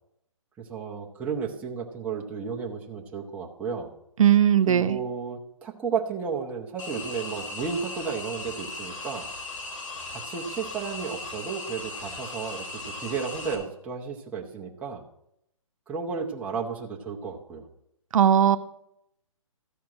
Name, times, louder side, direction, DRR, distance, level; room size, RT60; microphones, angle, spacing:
voice 1, 0.6-3.9 4.7-9.3 10.1-15.0 15.9-17.7, right 6 dB, 5° right, -2 dB, 0.7 m, -33 dB
voice 2, 4.2-5.0 18.1-18.6, right 9 dB, 70° right, 10 dB, 0.7 m, -18 dB
sound 1, 6.8-13.5, left 3 dB, 65° left, 3.0 m, -37 dB
13.5 x 4.5 x 7.6 m, 0.79 s
hypercardioid pair, 160°, 18 cm